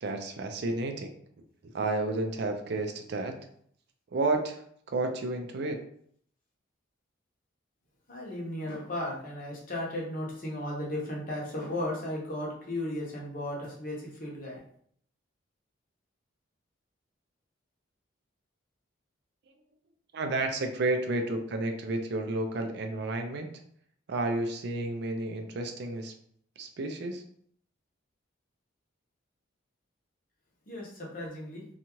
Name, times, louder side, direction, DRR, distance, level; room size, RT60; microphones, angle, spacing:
voice 1, 0.0-1.1 1.7-3.3 4.1-4.6 4.9-5.8 20.1-23.5 24.1-26.1 26.6-27.2, right 2 dB, 55° right, 5 dB, 0.4 m, -31 dB
voice 2, 8.1-14.6 30.6-31.6, left 1 dB, 40° left, -3 dB, 0.8 m, -35 dB
2.7 x 2.3 x 2.9 m, 0.64 s
head